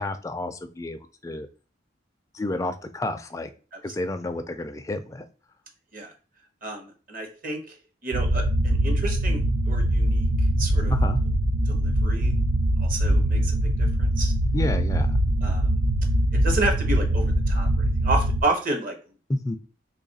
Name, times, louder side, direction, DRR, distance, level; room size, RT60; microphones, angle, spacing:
voice 1, 0.0-1.5 2.3-3.5 3.8-5.2 10.9-11.2 14.5-15.2 19.3-19.6, left 2 dB, 15° left, 8 dB, 0.3 m, -30 dB
voice 2, 6.6-7.6 8.0-9.4 9.7-10.3 10.6-10.9 11.7-12.3 12.8-13.5 14.0-14.3 15.4-15.7 16.3-19.0, right 2 dB, 50° right, 4 dB, 0.9 m, -30 dB
sound 1, 8.1-18.4, right 1 dB, 80° right, 0.5 m, -22 dB
3.1 x 2.4 x 3.9 m, 0.35 s
head